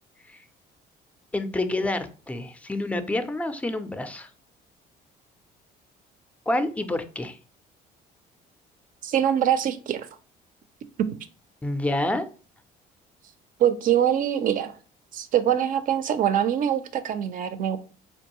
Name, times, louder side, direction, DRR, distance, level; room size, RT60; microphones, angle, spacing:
voice 1, 1.3-4.3 6.5-7.4 11.6-12.3, left 1 dB, 10° left, 10 dB, 0.4 m, -28 dB
voice 2, 9.0-10.1 13.6-14.7 15.1-17.8, right 10 dB, 55° right, 12 dB, 0.5 m, -23 dB
4.4 x 2.6 x 2.9 m, 0.38 s
cardioid pair, 110°, 17 cm